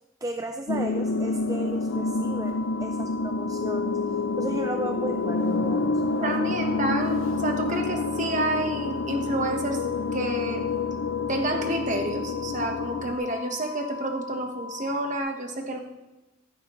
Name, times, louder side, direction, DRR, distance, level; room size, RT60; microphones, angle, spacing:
voice 1, 0.2-4.0 4.4-6.5, right 2 dB, 15° right, 5 dB, 0.4 m, -35 dB
sound 1, 0.7-13.2, left 3 dB, 75° left, 0.6 m, -28 dB
sound 2, 1.9-15.2, left 4 dB, 50° left, 1.9 m, -40 dB
voice 2, 6.2-9.8 10.1-10.6 11.3-15.8, right 1 dB, 40° right, 3 dB, 1.2 m, -29 dB
14.0 x 11.0 x 3.1 m, 1.1 s
head